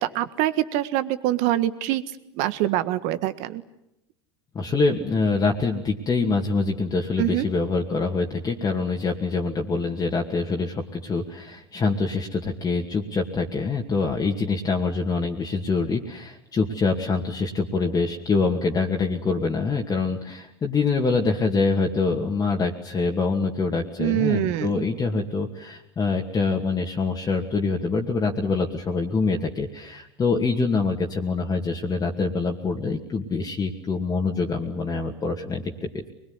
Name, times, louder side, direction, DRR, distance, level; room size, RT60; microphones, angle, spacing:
voice 1, 0.0-2.0 2.3-3.6 7.2-7.5 24.0-24.8, right 14 dB, 60° right, 12 dB, 1.6 m, -24 dB
voice 2, 4.5-35.6 35.9-36.1, left 4 dB, 25° left, 0 dB, 2.5 m, -25 dB
23.5 x 21.5 x 9.9 m, 0.86 s
hypercardioid pair, 85°, 14 cm